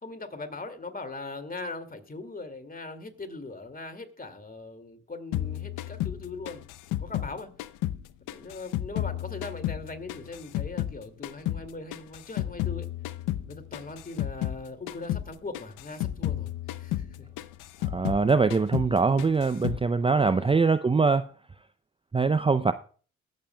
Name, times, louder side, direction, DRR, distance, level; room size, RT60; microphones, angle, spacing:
voice 1, 0.0-6.6 7.0-7.5 8.3-12.9 13.5-17.3 20.2-20.6, left 3 dB, 30° left, 2.4 m, -40 dB
sound 1, 5.3-8.0 8.3-11.0 11.2-14.6 14.9-15.3 15.5-18.3 18.5-18.9 19.2-19.8, left 13 dB, 85° left, 0.6 m, -32 dB
voice 2, 17.9-21.3 22.1-22.7, right 4 dB, 20° right, 0.5 m, -23 dB
22.5 x 7.5 x 2.3 m
supercardioid pair, 55°, 30 cm